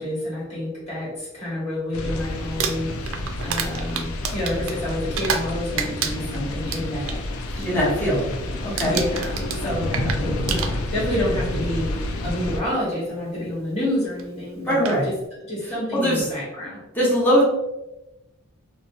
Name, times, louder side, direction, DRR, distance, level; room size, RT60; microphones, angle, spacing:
voice 1, 0.0-7.2 7.5-7.8 8.5-8.6 8.8-15.0 15.4-16.8, left 1 dB, 30° left, -7 dB, 1.3 m, -29 dB
sound 1, 1.9-12.6, left 1 dB, 85° left, 0.4 m, -29 dB
Crumpling crinkling, 2.4-5.5 5.8-7.2 7.6-7.9 8.1-8.5 8.8-11.2 12.1-12.2 14.2-14.3 14.7-15.0, right 7 dB, 65° right, 0.3 m, -29 dB
voice 2, 7.6-8.3 8.6-9.0 14.7-15.1 15.9-16.2 16.9-17.4, equal, 10° left, -7 dB, 0.8 m, -20 dB
2.7 x 2.1 x 2.6 m, 0.97 s
head